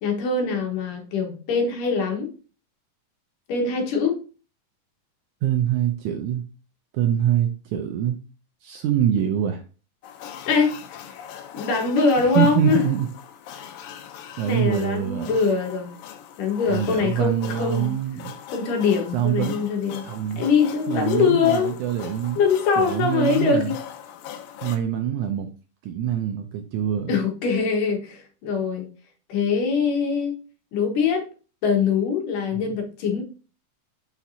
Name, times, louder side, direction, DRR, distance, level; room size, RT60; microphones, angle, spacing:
voice 1, 0.0-2.3 3.5-4.2 10.5-11.2 11.5-12.8 14.5-15.9 16.4-18.0 18.5-20.0 20.4-21.7 22.4-23.8 27.1-28.9 29.3-30.3 30.7-31.2 31.6-33.2, left 5 dB, 75° left, 2.8 m, -23 dB
voice 2, 5.4-6.4 6.9-8.2 8.6-9.6 12.4-13.1 14.4-15.3 16.7-18.3 19.1-19.7 20.0-20.4 20.9-22.4 22.8-23.8 24.6-25.5 25.8-27.1 32.5-32.7, right 10 dB, 80° right, 1.8 m, -24 dB
sound 1, 10.0-24.8, left 9 dB, 90° left, 2.4 m, -41 dB
5.9 x 5.9 x 2.7 m
omnidirectional pair, 3.9 m